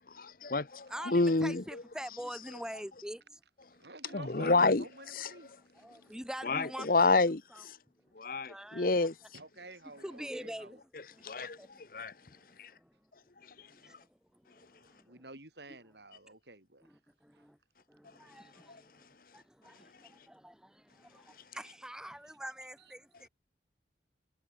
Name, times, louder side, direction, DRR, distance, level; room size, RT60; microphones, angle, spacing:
voice 1, 0.2-1.8 4.1-4.8 5.1-5.3 6.4-7.7 8.2-9.1 11.2-11.6 11.9-12.1 12.6-12.7, left 3 dB, 50° left, 0.9 m, -29 dB
voice 2, 0.9-3.4 5.8-7.6 8.5-9.1 10.0-10.8 11.1-11.8 13.8-13.9 16.8-17.6 17.9-18.8 19.3-23.3, equal, 5° right, 2.0 m, -45 dB
voice 3, 3.8-5.5 9.3-10.8 15.1-16.9 22.1-22.2, right 2 dB, 70° right, 7.0 m, -50 dB
head